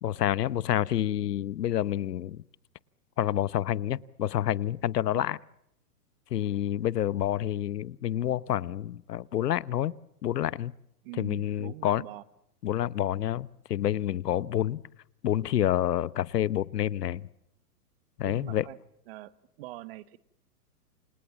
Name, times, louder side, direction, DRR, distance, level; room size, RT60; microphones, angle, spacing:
voice 1, 0.0-2.4 3.2-5.4 6.3-9.9 10.2-10.7 11.2-12.0 12.6-14.8 15.2-17.3 18.2-18.7, left 11 dB, 80° left, 19 dB, 1.0 m, -28 dB
voice 2, 11.0-12.2 18.2-18.8 19.1-20.2, right 17 dB, 35° right, 15 dB, 1.1 m, -44 dB
29.0 x 26.5 x 7.2 m, 0.82 s
hypercardioid pair, 145°, 47 cm